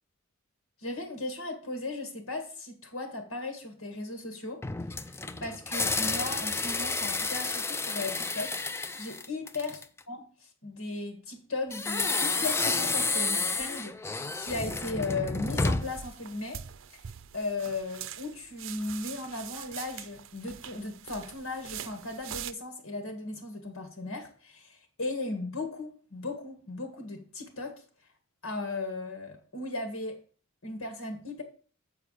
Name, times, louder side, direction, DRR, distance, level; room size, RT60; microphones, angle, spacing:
voice 1, 0.8-4.7 5.0-9.8 10.1-16.6 17.3-27.8 28.4-30.2 30.6-31.4, left 2 dB, 85° left, 1.8 m, -37 dB
sound 1, 4.6-10.0 11.7-16.1, left 3 dB, 10° left, 0.4 m, -30 dB
sound 2, 15.8-22.5, right 10 dB, 65° right, 0.5 m, -43 dB
7.9 x 4.8 x 6.5 m
head